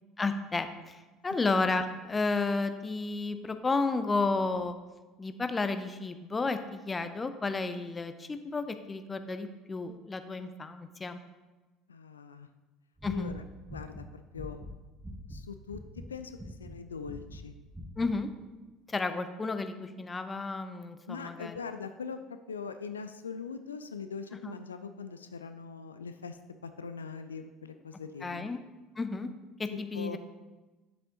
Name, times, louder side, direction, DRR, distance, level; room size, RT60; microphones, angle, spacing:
voice 1, 0.2-4.8 5.2-11.2 13.0-13.4 18.0-18.3 18.9-21.6 24.4-24.6 28.2-28.6 29.0-29.3 29.6-30.2, left 3 dB, 20° left, 9 dB, 0.6 m, -32 dB
voice 2, 11.9-12.5 13.0-13.4 13.7-14.6 15.3-15.8 16.1-17.5 21.1-26.4 26.6-28.5 29.9-30.2, left 5 dB, 80° left, 9 dB, 0.3 m, -41 dB
sound 1, 13.0-15.4 15.7-16.1 16.4-16.8 17.0-17.4 17.7-18.1, equal, 10° right, 1.1 m, -44 dB
9.0 x 7.5 x 2.8 m, 1.2 s
figure-of-eight pair, 65°, 0 cm